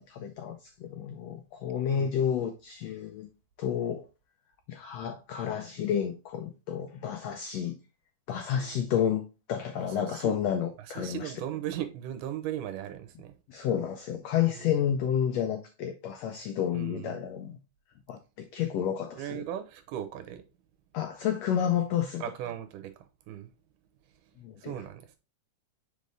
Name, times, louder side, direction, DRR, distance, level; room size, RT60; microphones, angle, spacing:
voice 1, 0.0-3.3 3.6-4.0 4.7-7.8 8.3-11.3 13.5-17.6 18.1-19.4 20.9-22.2 24.4-24.8, left 9 dB, 85° left, 1.4 m, -30 dB
voice 2, 9.8-10.4 10.8-13.3 14.5-14.9 16.7-17.2 19.2-20.4 22.2-23.5 24.6-25.2, right 11 dB, 80° right, 2.3 m, -38 dB
5.3 x 5.2 x 3.3 m
omnidirectional pair, 3.7 m